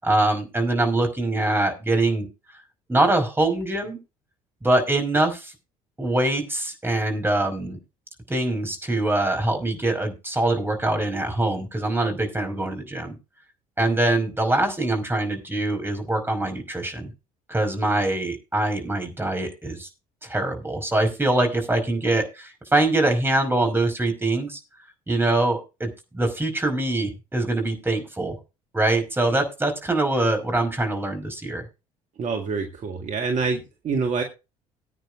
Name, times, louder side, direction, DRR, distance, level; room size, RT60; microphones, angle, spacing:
voice 1, 0.0-2.3 2.9-4.0 4.6-5.5 6.0-7.8 8.3-13.1 13.8-17.1 17.5-19.9 20.2-24.6 25.1-25.9 26.1-28.4 28.7-31.6, right 2 dB, 10° right, 4 dB, 5.3 m, -23 dB
voice 2, 32.2-34.2, right 4 dB, 45° right, 4 dB, 1.9 m, -26 dB
20.5 x 9.0 x 2.6 m, 0.28 s
figure-of-eight pair, 55°, 18 cm